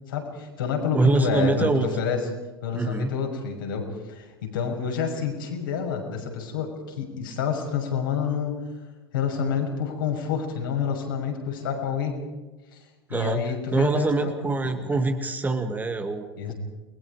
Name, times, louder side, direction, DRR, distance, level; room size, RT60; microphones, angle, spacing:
voice 1, 0.1-2.2 2.6-8.6 9.1-12.1 12.7-12.8 13.1-14.3 14.6-14.7 16.4-16.5, left 6 dB, 65° left, 1 dB, 6.3 m, -28 dB
voice 2, 0.9-1.9 2.7-3.1 13.1-13.4 13.7-16.5, right 3 dB, 15° right, 6 dB, 2.1 m, -24 dB
29.5 x 22.0 x 4.9 m, 1.2 s
figure-of-eight pair, 85°, 12 cm